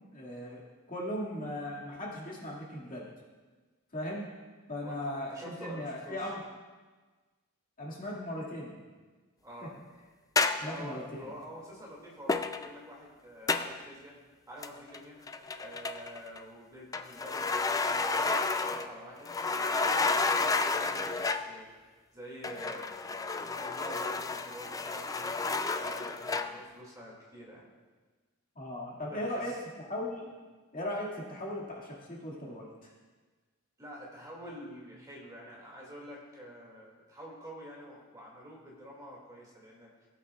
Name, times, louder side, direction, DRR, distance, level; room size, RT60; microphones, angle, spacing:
voice 1, 0.1-3.1 3.9-4.3 4.7-6.4 7.8-8.8 9.6-9.7 10.6-11.3 28.6-29.6 29.9-30.4 30.7-32.9, left 1 dB, 40° left, -4 dB, 2.1 m, -38 dB
voice 2, 5.3-6.3 9.4-9.7 10.6-14.1 14.5-15.2 15.6-21.7 22.1-22.9 23.3-25.5 25.8-27.7 29.1-29.5 33.8-39.9, equal, 15° right, -4 dB, 2.2 m, -47 dB
sound 1, 10.4-10.8 12.3-12.8 13.5-13.8 14.6-15.0 15.3-16.4 16.9-19.0 19.2-21.5 22.4-26.6, left 3 dB, 15° left, 0.3 m, -31 dB
18.0 x 8.2 x 2.3 m, 1.3 s
head